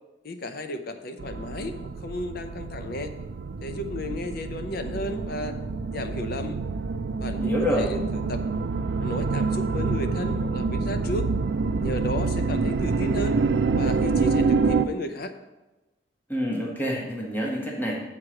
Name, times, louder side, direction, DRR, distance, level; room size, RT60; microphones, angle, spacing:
voice 1, 0.2-3.1 3.6-5.6 5.9-6.6 7.2-8.5 9.0-11.3 11.8-13.4 13.7-15.3, left 1 dB, 60° left, 8 dB, 0.7 m, -33 dB
sound 1, 1.2-14.8, right 4 dB, 80° right, 0.4 m, -27 dB
voice 2, 7.4-7.8 16.3-18.0, equal, 10° left, -3 dB, 1.4 m, -27 dB
7.5 x 4.8 x 6.3 m, 1.1 s
head